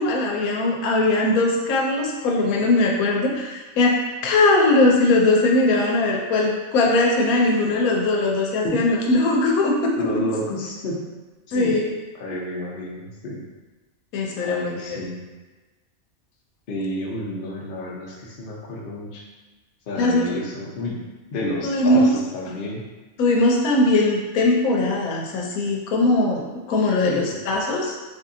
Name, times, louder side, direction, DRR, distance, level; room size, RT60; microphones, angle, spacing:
voice 1, 0.0-10.2 11.5-11.9 14.1-15.0 20.0-20.4 21.6-22.1 23.2-28.0, left 2 dB, 90° left, -1 dB, 1.1 m, -20 dB
voice 2, 10.0-11.0 11.5-11.7 12.2-13.4 14.4-15.2 16.7-19.2 19.9-21.0 21.3-22.8 27.1-27.4, left 1 dB, 45° left, -4 dB, 0.8 m, -30 dB
3.9 x 2.7 x 2.6 m, 1.2 s
omnidirectional pair, 1.5 m